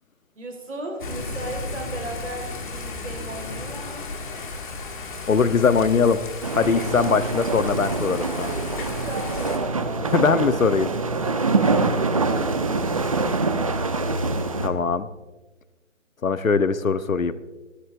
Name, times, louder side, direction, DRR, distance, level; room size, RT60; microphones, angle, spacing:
voice 1, 0.3-4.1 8.3-10.7 11.2-13.9, right 2 dB, 65° right, 3 dB, 4.2 m, -37 dB
Thunder / Rain, 1.0-9.6, left 3 dB, 35° left, 2.1 m, -34 dB
voice 2, 5.3-6.2 6.5-8.5 10.1-10.9 14.6-15.1 16.2-17.3, left 5 dB, 75° left, 13 dB, 1.0 m, -21 dB
sound 1, 6.4-14.7, right 3 dB, 25° right, 0.7 m, -25 dB
26.0 x 13.0 x 2.6 m, 1.2 s
figure-of-eight pair, 155°, 40 cm